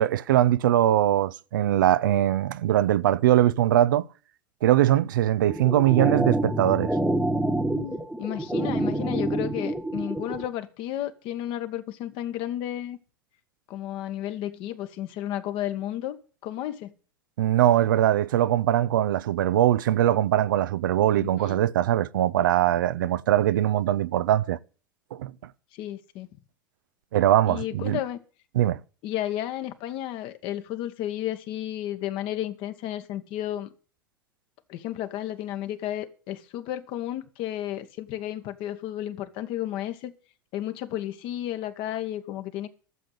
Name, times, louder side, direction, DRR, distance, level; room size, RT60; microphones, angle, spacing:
voice 1, 0.0-4.1 4.6-7.0 17.4-24.6 25.1-25.3 27.1-28.0 28.5-28.8, right 12 dB, 65° right, 0.6 m, -21 dB
sound 1, 5.5-10.5, right 1 dB, 5° right, 1.4 m, -27 dB
voice 2, 7.7-13.0 13.7-16.2 16.4-16.9 21.2-21.6 25.7-26.3 27.4-28.2 29.0-33.7 34.7-40.1 40.5-42.7, left 12 dB, 50° left, 1.5 m, -32 dB
12.5 x 7.6 x 8.0 m
figure-of-eight pair, 85°, 11 cm